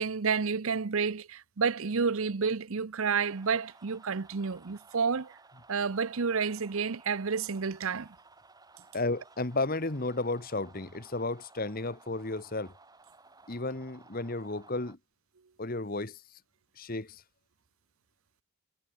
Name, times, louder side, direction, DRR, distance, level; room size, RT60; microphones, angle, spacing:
voice 1, 0.0-5.3 5.7-8.1, right 5 dB, 70° right, 0.7 m, -30 dB
sound 1, 3.1-15.0, right 3 dB, 15° right, 5.0 m, -57 dB
voice 2, 8.9-12.7 13.5-15.0 15.6-16.2 16.8-17.2, left 2 dB, 40° left, 1.4 m, -33 dB
head